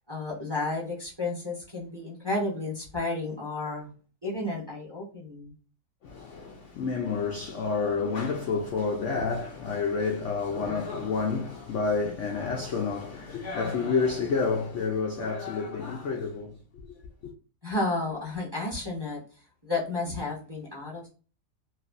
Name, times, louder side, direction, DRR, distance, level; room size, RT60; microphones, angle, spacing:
voice 1, 0.1-3.9 4.2-5.5 17.6-19.2 19.6-21.1, left 2 dB, 20° right, 0.8 m, -32 dB
voice 2, 6.0-16.6, left 4 dB, 70° left, 0.7 m, -29 dB
3.1 x 2.5 x 2.4 m
omnidirectional pair, 1.8 m